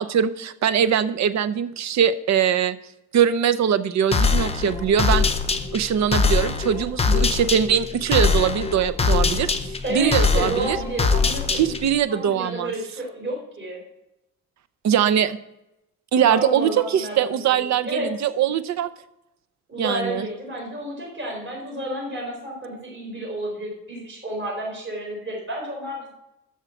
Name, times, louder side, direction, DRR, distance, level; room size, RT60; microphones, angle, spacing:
voice 1, 0.0-2.8 3.1-5.3 5.7-10.8 11.5-12.7 14.8-15.4 16.1-18.9 19.8-20.3, right 8 dB, 60° right, 13 dB, 0.7 m, -22 dB
sound 1, 4.1-12.0, left 4 dB, 20° left, 0.7 m, -22 dB
voice 2, 9.8-11.7 12.1-13.8 16.2-18.1 19.7-26.1, right 1 dB, 40° right, -3 dB, 4.5 m, -31 dB
13.0 x 4.5 x 7.1 m, 0.87 s
wide cardioid pair, 170°, 32 cm